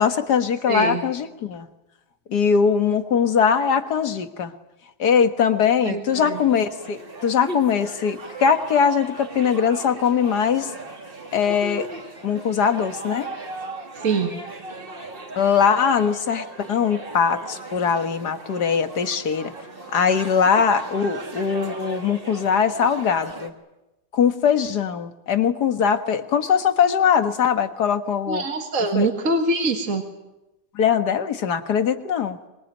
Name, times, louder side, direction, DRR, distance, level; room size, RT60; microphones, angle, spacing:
voice 1, 0.0-1.7 2.3-4.5 5.0-10.7 11.3-11.9 12.2-13.3 15.3-19.5 19.9-23.5 24.1-28.4 29.0-29.1 30.8-32.4, left 7 dB, 75° left, 8 dB, 2.0 m, -21 dB
voice 2, 0.7-1.0 5.9-6.4 14.0-14.3 28.3-30.0, right 3 dB, 50° right, 3 dB, 2.2 m, -24 dB
sound 1, 6.1-23.5, right 2 dB, 30° right, 2.4 m, -37 dB
25.0 x 22.0 x 9.1 m, 0.99 s
omnidirectional pair, 1.8 m